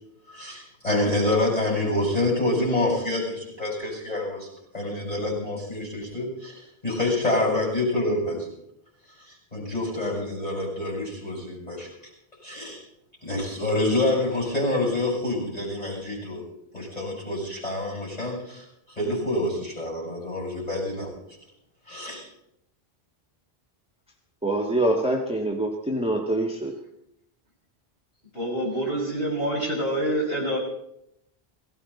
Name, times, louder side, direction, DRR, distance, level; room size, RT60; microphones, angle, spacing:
voice 1, 0.3-4.5 4.7-8.5 9.5-11.9 12.4-12.8 13.2-16.4 16.7-21.1 21.9-22.2, left 2 dB, 40° left, -3 dB, 7.6 m, -27 dB
voice 2, 24.4-26.7, right 1 dB, 5° right, 0 dB, 1.6 m, -25 dB
voice 3, 28.3-30.6, right 1 dB, 70° left, -3 dB, 6.0 m, -26 dB
18.5 x 16.5 x 4.2 m, 0.78 s
omnidirectional pair, 1.0 m